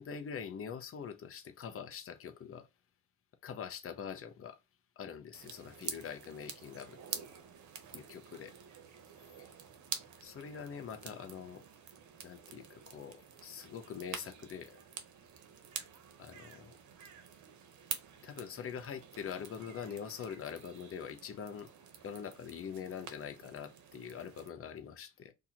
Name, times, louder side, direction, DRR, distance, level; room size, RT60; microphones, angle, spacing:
voice 1, 0.0-2.7 3.4-4.6 5.0-7.0 7.9-8.5 9.4-9.5 10.2-11.6 12.2-14.8 16.2-16.8 18.2-21.7 22.0-25.3, left 7 dB, 45° left, 0.8 m, -44 dB
sound 1, 5.3-24.5, right 8 dB, 75° right, 0.9 m, -48 dB
2.9 x 2.6 x 4.1 m
cardioid pair, 90°, 30 cm